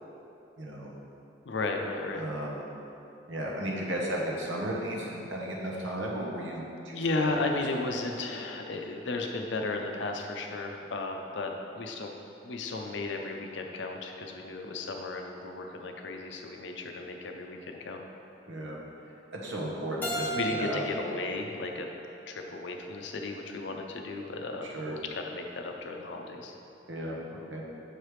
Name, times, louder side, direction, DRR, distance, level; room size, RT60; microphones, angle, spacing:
voice 1, 0.6-0.9 2.1-2.6 3.3-7.5 18.5-18.8 19.0-20.8 24.7-24.9 26.9-27.6, right 1 dB, 85° right, -2 dB, 1.0 m, -35 dB
voice 2, 1.4-2.2 6.9-12.1 12.4-18.0 20.3-21.9 22.3-26.5, left 3 dB, 75° left, 3 dB, 0.5 m, -34 dB
Keyboard (musical), 20.0-22.8, right 1 dB, 10° left, 0.6 m, -37 dB
6.4 x 4.9 x 3.1 m, 2.8 s
head